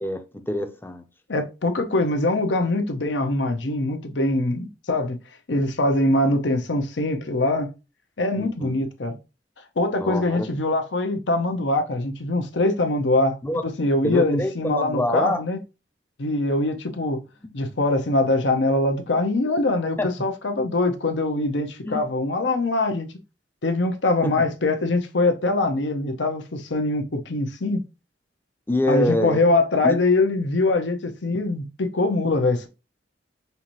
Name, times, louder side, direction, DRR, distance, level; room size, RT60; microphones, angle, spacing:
voice 1, 0.0-1.0 8.4-8.9 10.0-10.5 13.4-13.6 14.0-15.4 20.0-20.1 21.8-22.0 24.2-24.3 28.7-29.4 29.8-30.0, left 1 dB, 10° left, 0.5 m, -25 dB
voice 2, 1.3-5.2 5.5-7.7 8.2-9.2 9.8-13.4 13.8-15.6 16.2-17.2 17.5-23.1 23.6-27.8 28.9-32.7, left 2 dB, 80° left, 0.8 m, -23 dB
5.5 x 2.6 x 3.0 m
head